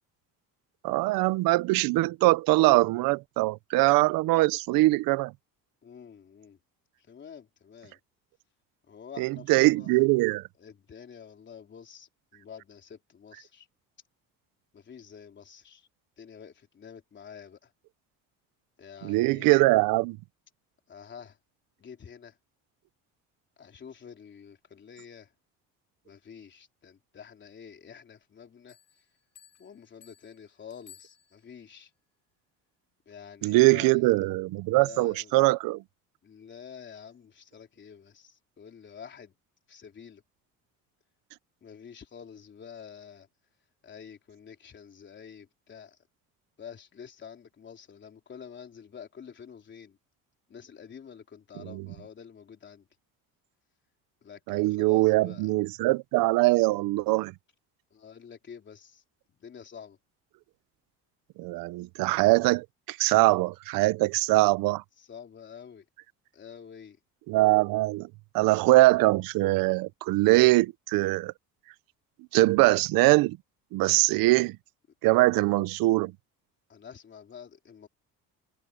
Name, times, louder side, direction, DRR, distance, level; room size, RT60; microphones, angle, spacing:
voice 1, 0.8-5.3 9.2-10.4 19.0-20.2 33.4-35.8 51.7-51.8 54.5-57.3 61.4-64.8 67.3-68.1 68.3-71.3 72.3-73.4 73.7-74.6 75.0-76.1, right 20 dB, 85° right, 0.8 m, -22 dB
voice 2, 5.8-6.6 7.0-8.0 8.9-10.0 10.6-13.7 14.7-15.9 16.2-17.7 18.8-19.6 20.9-21.4 21.8-22.4 23.6-25.3 26.0-28.8 29.6-31.9 33.1-34.1 34.8-35.4 36.2-39.3 39.7-40.2 41.6-43.3 43.8-46.0 46.6-50.0 50.5-52.9 54.2-55.5 57.9-59.0 59.3-60.0 65.0-65.9 66.3-67.0 75.2-75.3 76.7-77.9, left 7 dB, 35° left, 3.7 m, -48 dB
Bell, 28.7-31.8, left 8 dB, 55° left, 5.8 m, -57 dB
cardioid pair, 140°, 33 cm